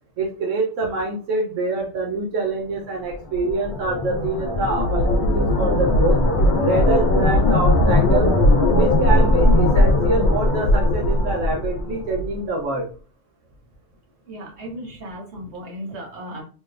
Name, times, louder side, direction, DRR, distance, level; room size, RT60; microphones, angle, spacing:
voice 1, 0.2-6.2 6.6-8.3 8.7-12.9, right 3 dB, 85° right, -1 dB, 1.1 m, -25 dB
sound 1, 3.1-12.3, left 1 dB, 70° left, 1.3 m, -18 dB
voice 2, 14.3-16.4, equal, 60° right, -2 dB, 1.5 m, -35 dB
4.1 x 3.1 x 2.4 m, 0.39 s
omnidirectional pair, 1.3 m